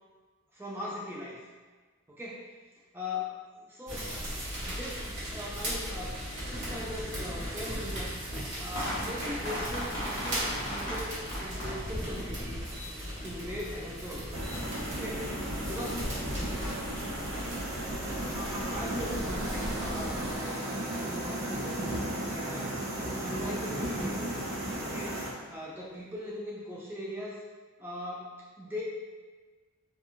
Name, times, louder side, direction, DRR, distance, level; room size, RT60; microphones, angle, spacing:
voice 1, 0.5-1.4 2.1-2.6 2.9-4.1 4.7-8.3 8.6-12.6 13.2-14.3 14.9-16.7 18.2-22.8 23.2-24.3 24.8-27.4 27.8-28.8, left 1 dB, 10° right, -5 dB, 0.3 m, -40 dB
sound 1, 3.9-20.4, equal, 55° right, 1.2 m, -37 dB
sound 2, 6.2-11.7, equal, 60° left, 1.0 m, -38 dB
sound 3, 14.3-25.3, right 1 dB, 90° right, 0.8 m, -35 dB
2.9 x 2.3 x 2.4 m, 1.4 s
head